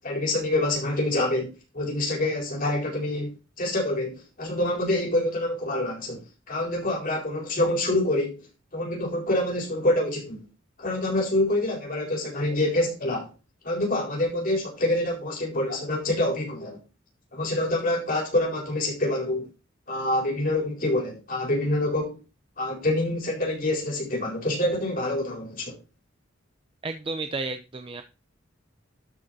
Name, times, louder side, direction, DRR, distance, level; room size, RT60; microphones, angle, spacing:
voice 1, 0.0-3.3 3.6-8.4 8.7-10.4 10.8-13.3 13.6-16.8 17.3-19.5 19.9-22.2 22.6-25.8, left 1 dB, 45° left, 4.2 m, -26 dB
voice 2, 26.8-28.0, right 3 dB, 25° right, 0.6 m, -32 dB
12.5 x 5.4 x 4.2 m
head